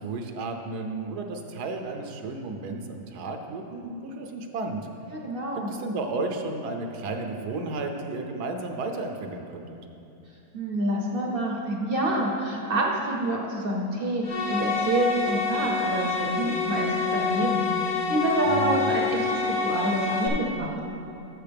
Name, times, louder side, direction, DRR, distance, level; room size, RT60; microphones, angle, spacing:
voice 1, 0.0-4.9 5.7-9.8 18.4-19.0, right 3 dB, 75° right, 4 dB, 1.2 m, -33 dB
voice 2, 5.1-5.7 10.5-20.9, right 1 dB, 45° right, -1 dB, 0.8 m, -27 dB
sound 1, 14.2-20.3, left 5 dB, 80° left, 1.7 m, -27 dB
11.5 x 7.3 x 3.4 m, 2.7 s
omnidirectional pair, 1.7 m